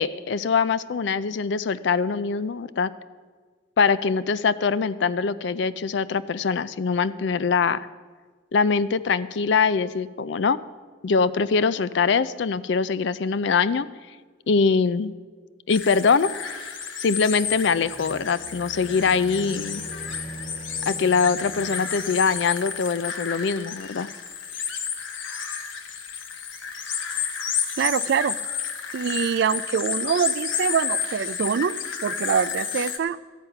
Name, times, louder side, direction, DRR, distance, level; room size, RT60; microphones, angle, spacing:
voice 1, 0.0-2.9 3.8-7.9 8.5-10.6 11.0-13.9 14.5-15.1 15.7-16.3 17.0-19.8 20.9-24.1, left 5 dB, 65° left, 16 dB, 0.4 m, -23 dB
sound 1, 15.7-33.0, left 7 dB, 85° left, 1.2 m, -31 dB
sound 2, 17.3-23.1, right 1 dB, 35° left, 1.3 m, -42 dB
voice 2, 27.8-28.3 28.9-31.8 32.0-33.2, right 7 dB, 60° right, 19 dB, 0.3 m, -24 dB
13.0 x 9.6 x 5.7 m, 1.5 s
head